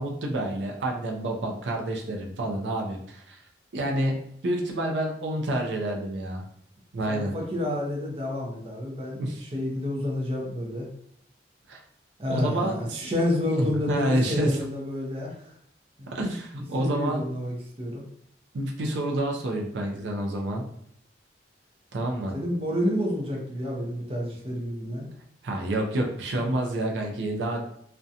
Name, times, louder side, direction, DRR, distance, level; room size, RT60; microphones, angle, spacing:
voice 1, 0.0-3.4 3.7-6.4 6.9-7.3 9.2-9.5 11.7-11.8 12.3-13.1 13.5-14.6 16.1-17.2 18.5-20.6 21.9-22.3 25.4-27.7, right 1 dB, 85° right, 1 dB, 0.4 m, -28 dB
voice 2, 7.1-10.9 12.2-15.5 16.0-16.1 16.5-18.0 22.3-25.1, left 1 dB, 30° right, -1 dB, 0.5 m, -30 dB
2.4 x 2.1 x 2.7 m, 0.69 s
head